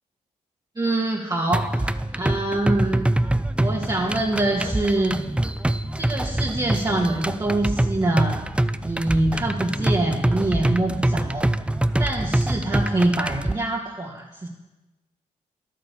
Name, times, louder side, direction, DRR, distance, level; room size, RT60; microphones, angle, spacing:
voice 1, 0.8-3.1 3.6-5.2 6.0-8.4 8.8-11.5 12.0-14.5, right 2 dB, 25° right, -2 dB, 1.8 m, -25 dB
sound 1, 1.5-13.5, right 1 dB, 5° right, 0.5 m, -25 dB
11.0 x 9.0 x 7.0 m, 1.1 s
supercardioid pair, 60°, 15 cm